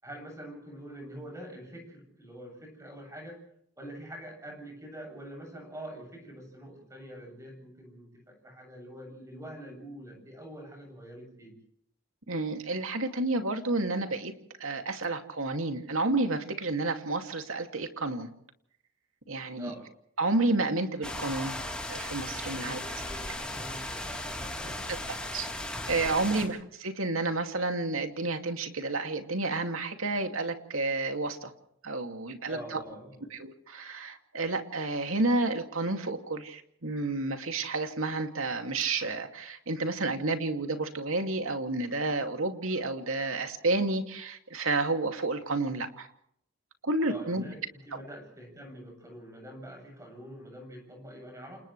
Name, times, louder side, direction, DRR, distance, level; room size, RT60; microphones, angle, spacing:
voice 1, 0.0-3.4 3.8-11.5 19.6-19.9 22.4-24.9 26.1-26.5 32.5-33.3 47.0-51.6, right 1 dB, 15° right, 2 dB, 7.7 m, -45 dB
voice 2, 12.3-14.3 14.6-18.3 19.3-19.7 20.2-21.6 21.9-22.8 24.9-25.0 25.3-25.5 25.9-31.5 31.8-32.8 33.3-46.1 46.8-47.4, right 2 dB, 85° right, 5 dB, 2.5 m, -30 dB
sound 1, 21.0-26.5, left 1 dB, 5° left, 3.5 m, -36 dB
29.0 x 28.5 x 3.3 m, 0.71 s
head